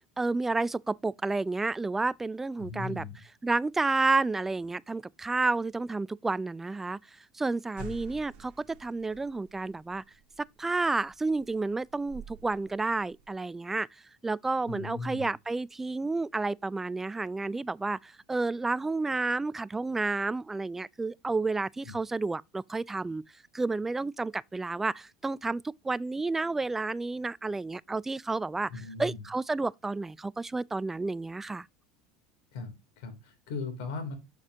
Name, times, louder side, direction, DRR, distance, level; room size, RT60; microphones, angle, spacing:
voice 1, 0.2-3.0 3.4-7.0 7.3-10.0 10.4-13.9 14.2-23.2 23.5-28.7 29.0-31.7, right 3 dB, 15° right, 0.3 m, -30 dB
voice 2, 2.6-3.2 7.8-7.9 14.7-15.3 21.8-21.9 28.7-29.2 32.5-34.1, left 4 dB, 70° left, 3.1 m, -38 dB
sound 1, 7.8-13.3, right 4 dB, 55° right, 1.6 m, -50 dB
7.2 x 6.9 x 2.8 m
hypercardioid pair, 80°, 2 cm